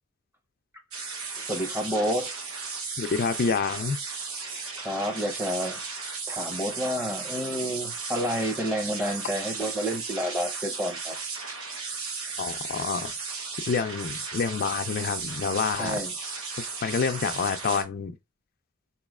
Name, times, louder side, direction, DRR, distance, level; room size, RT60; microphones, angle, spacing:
sound 1, 0.9-17.8, right 4 dB, 85° right, 0.9 m, -35 dB
voice 1, 1.4-2.3 4.4-5.8 6.3-11.2 15.8-16.1, equal, 10° right, 0.7 m, -30 dB
voice 2, 3.0-4.0 12.4-13.1 13.7-16.0 16.8-18.1, left 5 dB, 45° left, 0.4 m, -27 dB
4.1 x 3.1 x 2.3 m
head